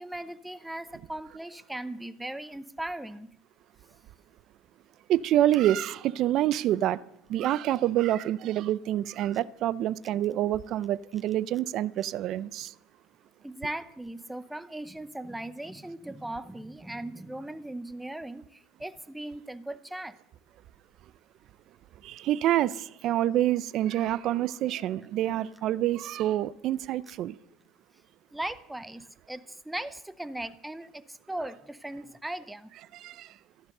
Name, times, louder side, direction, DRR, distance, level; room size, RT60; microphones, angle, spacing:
voice 1, 0.0-3.3 13.4-20.2 28.3-32.7, right 1 dB, 5° right, 0.7 m, -38 dB
voice 2, 5.1-7.0 7.3-12.7 22.0-27.4 32.9-33.3, right 13 dB, 50° right, 0.6 m, -27 dB
14.5 x 11.0 x 6.7 m
cardioid pair, 130°, 0 cm